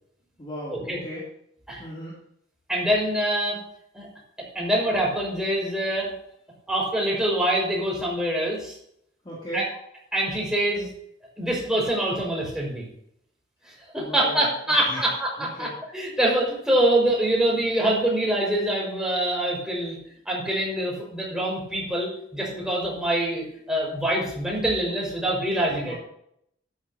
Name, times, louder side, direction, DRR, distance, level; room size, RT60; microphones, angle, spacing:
voice 1, 0.4-1.2 1.8-2.2 9.2-9.6 14.0-14.4 14.7-15.0 15.4-15.7 25.9-26.0, equal, 30° left, -6 dB, 3.0 m, -36 dB
voice 2, 2.7-3.6 3.9-4.1 4.5-6.1 6.7-8.7 9.5-9.7 10.1-10.9 11.4-12.9 13.7-20.0 20.3-25.9, right 1 dB, 5° right, -3 dB, 5.5 m, -25 dB
13.5 x 11.0 x 2.9 m, 0.73 s
head